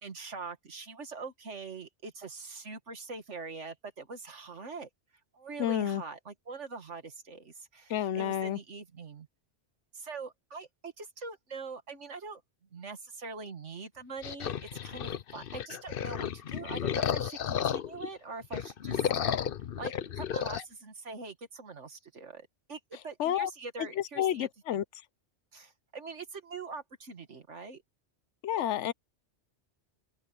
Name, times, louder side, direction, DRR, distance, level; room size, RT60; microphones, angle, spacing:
voice 1, 0.0-4.9 5.3-9.3 9.9-12.4 12.7-19.1 19.8-24.8 25.5-27.8, right 4 dB, 90° right, 2.2 m, -43 dB
voice 2, 5.6-6.0 7.9-8.6 23.2-23.5 23.8-24.8 28.4-28.9, left 10 dB, 85° left, 1.0 m, -30 dB
sound 1, 14.2-18.1 18.4-20.6, left 8 dB, 55° left, 0.9 m, -33 dB
open air
omnidirectional pair, 1.2 m